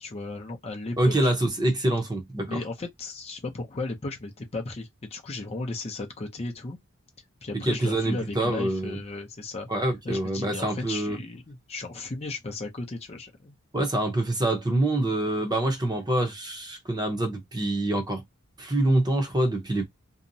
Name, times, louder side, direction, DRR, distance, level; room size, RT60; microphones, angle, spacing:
voice 1, 0.0-1.3 2.4-6.8 7.4-13.5, left 2 dB, 30° left, 0.5 m, -35 dB
voice 2, 1.0-2.6 7.7-9.0 9.7-11.2 13.7-18.2 18.6-19.8, right 1 dB, 20° right, 0.7 m, -25 dB
2.7 x 2.1 x 2.6 m
head